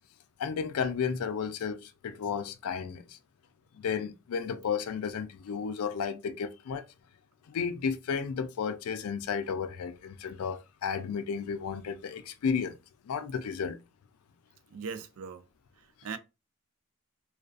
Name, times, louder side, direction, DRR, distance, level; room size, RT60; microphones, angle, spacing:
voice 1, 0.4-3.2 3.7-6.9 7.5-12.8 13.0-13.8, left 6 dB, 75° left, 0.4 m, -33 dB
voice 2, 14.7-15.5 15.7-16.2, right 5 dB, 75° right, 0.4 m, -40 dB
2.4 x 2.3 x 2.4 m
head